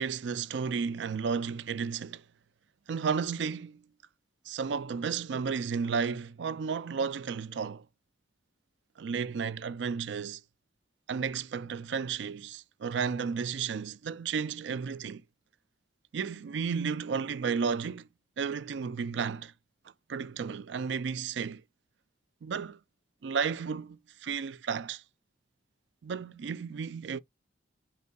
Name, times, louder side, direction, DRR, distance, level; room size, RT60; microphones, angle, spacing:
voice 1, 0.0-2.2 2.9-3.8 4.5-7.9 9.0-10.4 11.1-15.2 16.1-18.1 18.4-19.5 20.1-21.6 22.4-22.8 23.2-25.0 26.0-27.2, right 6 dB, 90° right, 0.4 m, -33 dB
5.4 x 3.5 x 2.3 m
head